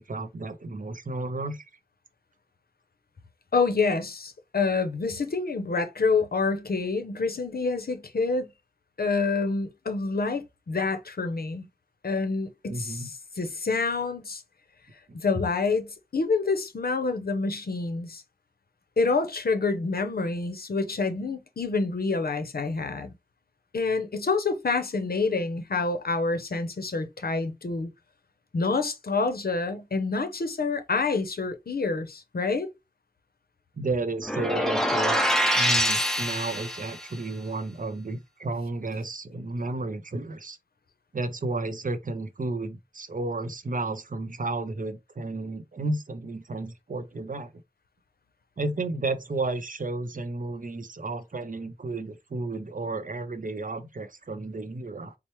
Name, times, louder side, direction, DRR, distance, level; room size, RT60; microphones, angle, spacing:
voice 1, 0.0-1.6 12.7-13.1 15.1-15.2 33.8-35.2 35.5-40.6 41.1-47.5 48.6-55.1, right 2 dB, 65° right, 0.6 m, -32 dB
voice 2, 3.5-8.5 9.0-11.7 12.0-14.4 15.1-18.2 19.0-23.1 23.7-27.9 28.5-32.7, left 4 dB, 85° left, 0.6 m, -27 dB
sound 1, 34.2-37.0, equal, 5° left, 0.8 m, -25 dB
4.3 x 2.0 x 3.0 m
wide cardioid pair, 55°, 15 cm